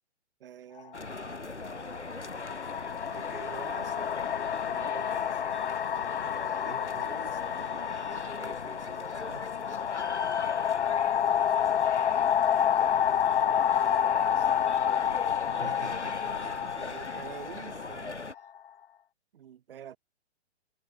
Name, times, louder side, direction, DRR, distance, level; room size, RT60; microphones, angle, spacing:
voice 1, 0.4-1.0 3.1-4.1 4.7-5.4 6.6-8.2 11.7-12.1 13.5-15.3 16.8-18.1 19.3-20.0, right 10 dB, 55° right, 7.4 m, -48 dB
sound 1, 0.8-1.0 1.9-18.6, left 9 dB, 55° left, 2.7 m, -29 dB
sound 2, 0.9-18.3, left 3 dB, 90° left, 2.4 m, -40 dB
voice 2, 6.2-7.8 8.3-9.5 15.5-16.9, right 3 dB, 85° right, 5.3 m, -47 dB
figure-of-eight pair, 120°, 34 cm